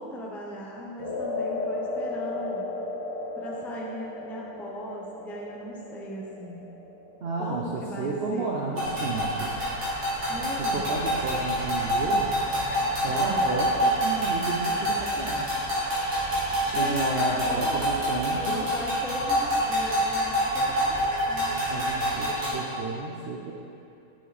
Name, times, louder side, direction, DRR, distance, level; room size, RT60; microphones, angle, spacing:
voice 1, 0.0-2.7 3.4-6.6 7.4-8.6 10.3-10.9 13.0-13.5 16.7-18.0 18.4-21.0 21.3-21.6, equal, ahead, -3 dB, 0.4 m, -38 dB
sound 1, 1.0-9.3, left 2 dB, 55° left, 2.3 m, -35 dB
voice 2, 7.2-9.6 10.6-12.3 13.0-15.5 16.7-18.7 21.7-23.5, right 3 dB, 55° right, -3 dB, 0.7 m, -32 dB
sound 2, 8.8-22.5, equal, 80° right, 2.5 m, -27 dB
6.8 x 6.2 x 4.1 m, 2.7 s
omnidirectional pair, 1.6 m